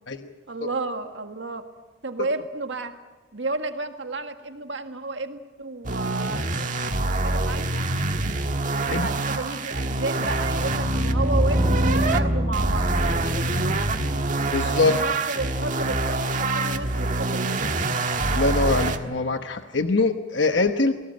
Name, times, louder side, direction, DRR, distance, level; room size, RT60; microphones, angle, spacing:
voice 1, 0.5-1.7 2.0-2.9 3.3-7.8 8.8-13.8 14.6-18.0, right 3 dB, 75° right, 7 dB, 1.8 m, -32 dB
Bass an Synth, 5.8-12.2 12.5-19.0, right 2 dB, 45° right, 1.5 m, -26 dB
sound 1, 10.1-15.1, equal, 20° right, 3.7 m, -26 dB
voice 2, 14.5-15.0 18.3-20.9, left 3 dB, 70° left, 7 dB, 1.1 m, -23 dB
28.0 x 18.5 x 7.9 m, 1.3 s
head